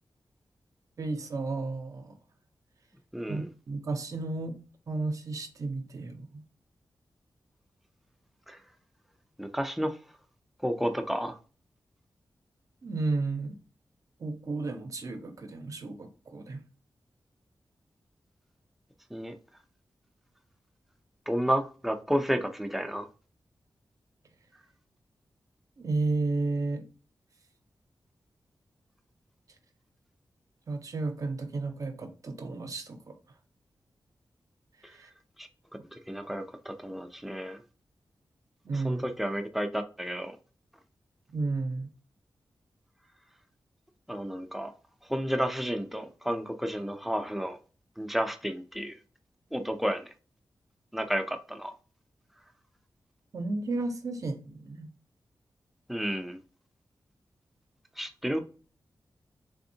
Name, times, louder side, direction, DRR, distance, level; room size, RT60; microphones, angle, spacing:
voice 1, 1.0-2.2 3.3-4.6 4.9-6.4 12.8-13.6 14.2-16.6 25.8-26.9 30.7-33.1 34.9-35.1 38.6-39.0 41.3-41.9 53.3-54.9, right 3 dB, 45° right, 0.6 m, -33 dB
voice 2, 3.1-3.5 8.5-8.6 9.4-10.0 10.6-11.4 19.1-19.3 21.3-23.1 35.4-35.5 35.9-37.6 38.7-40.4 44.1-44.7 45.1-47.6 48.0-49.0 49.5-50.0 50.9-51.7 55.9-56.4 58.0-58.4, equal, ahead, 0.4 m, -31 dB
3.5 x 3.4 x 2.7 m
wide cardioid pair, 160°, 8 cm